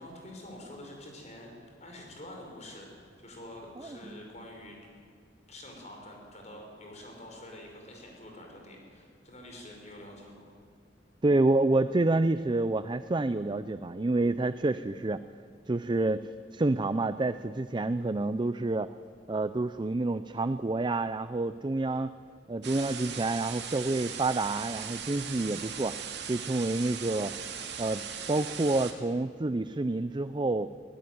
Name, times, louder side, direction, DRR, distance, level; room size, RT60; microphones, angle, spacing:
voice 1, 0.0-2.9 3.2-4.8 5.5-10.6, left 1 dB, 40° left, 1 dB, 5.7 m, -47 dB
voice 2, 11.2-15.2 15.7-18.9 19.3-22.1 22.5-26.0 26.3-27.3 27.8-30.7, right 2 dB, 25° right, 12 dB, 0.5 m, -28 dB
sound 1, 22.6-28.9, right 7 dB, 65° right, 2.5 m, -39 dB
21.0 x 17.0 x 9.5 m, 2.3 s
head